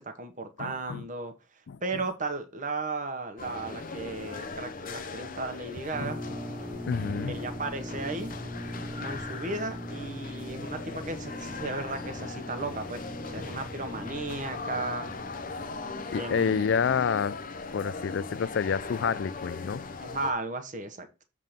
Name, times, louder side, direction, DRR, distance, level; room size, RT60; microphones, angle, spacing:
voice 1, 0.0-1.3 1.8-6.2 7.3-8.3 8.9-13.0 13.3-15.1 16.2-16.7 20.0-21.2, right 3 dB, 40° right, 1.2 m, -35 dB
voice 2, 0.6-1.1 1.7-1.8 4.9-5.0 6.0-6.2 6.9-7.3 16.1-17.4 17.7-19.8, left 6 dB, 60° left, 0.3 m, -28 dB
sound 1, 3.4-20.3, left 3 dB, 45° left, 0.7 m, -39 dB
sound 2, 5.9-16.8, equal, 5° right, 0.8 m, -41 dB
7.5 x 3.7 x 6.5 m
head